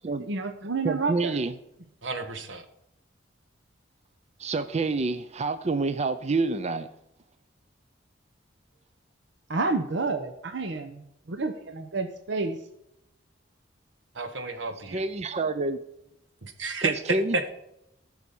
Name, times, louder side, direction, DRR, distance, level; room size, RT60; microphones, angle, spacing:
voice 1, 0.2-1.4 9.5-12.6, right 3 dB, 70° right, 7 dB, 0.9 m, -30 dB
voice 2, 0.8-1.5 4.4-6.9 14.9-15.8 16.8-17.5, right 3 dB, 35° right, 11 dB, 0.5 m, -28 dB
voice 3, 2.0-2.6 14.1-15.0 16.4-16.9 17.3-17.5, right 3 dB, 85° right, 7 dB, 1.4 m, -31 dB
14.0 x 6.1 x 5.3 m, 0.83 s
head